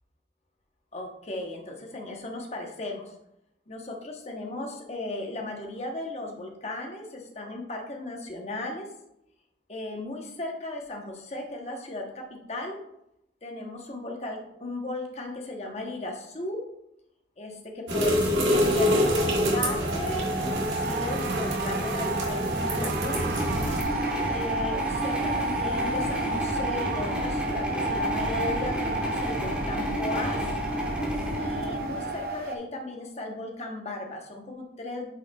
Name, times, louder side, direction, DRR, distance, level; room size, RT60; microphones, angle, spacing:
voice 1, 0.9-3.1 3.7-8.9 9.7-12.8 13.4-16.7 17.4-23.3 24.3-30.5 31.4-35.1, left 2 dB, 35° left, 1 dB, 0.9 m, -36 dB
sound 1, 17.9-23.8, equal, 90° right, 1.8 m, -26 dB
sound 2, 18.5-32.5, right 3 dB, 50° right, 0.5 m, -33 dB
sound 3, 23.0-32.4, equal, 5° right, 1.3 m, -31 dB
8.9 x 5.3 x 2.3 m, 0.82 s
head